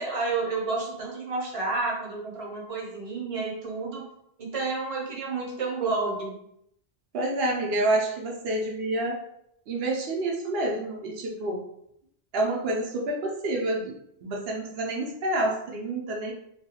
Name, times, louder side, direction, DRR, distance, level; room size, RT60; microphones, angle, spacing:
voice 1, 0.0-4.0 4.4-6.4, right 3 dB, 35° right, -2 dB, 0.7 m, -30 dB
voice 2, 7.1-9.2 9.7-11.6 12.3-13.9 14.2-16.3, right 1 dB, 70° right, -1 dB, 0.8 m, -28 dB
2.4 x 2.3 x 2.7 m, 0.75 s
omnidirectional pair, 1.1 m